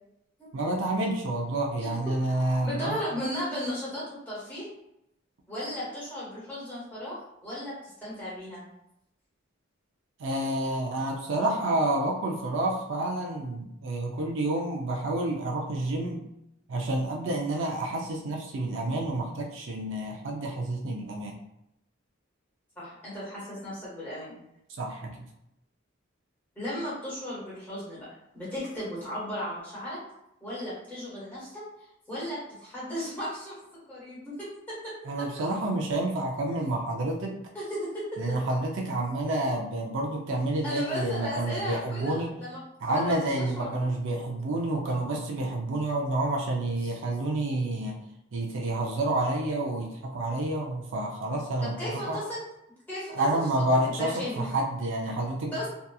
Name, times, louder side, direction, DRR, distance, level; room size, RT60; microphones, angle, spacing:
voice 1, 0.5-3.0 10.2-16.3 16.7-21.4 24.7-25.3 35.1-37.3 38.2-42.4 42.8-48.0 48.3-52.2 53.1-55.7, right 1 dB, 65° right, 0 dB, 0.4 m, -29 dB
voice 2, 2.6-4.7 5.5-7.2 7.4-8.6 22.8-24.4 26.5-28.0 28.3-30.0 30.4-31.6 32.1-33.5 33.9-34.9 37.5-38.2 40.6-42.6 42.9-43.9 46.8-46.9 51.6-52.4 52.9-53.2 53.8-54.5 55.5-55.7, equal, 10° left, -9 dB, 1.3 m, -35 dB
2.8 x 2.3 x 2.3 m, 0.81 s
head